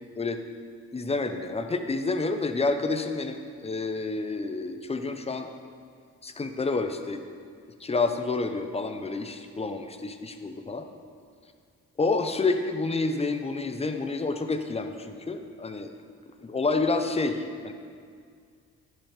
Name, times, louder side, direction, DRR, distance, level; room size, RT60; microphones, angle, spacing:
voice 1, 0.9-5.5 6.2-7.2 7.8-10.8 12.0-15.9 16.4-17.7, left 3 dB, 20° left, 7 dB, 0.7 m, -29 dB
10.5 x 5.6 x 5.1 m, 2.2 s
cardioid pair, 90°, 30 cm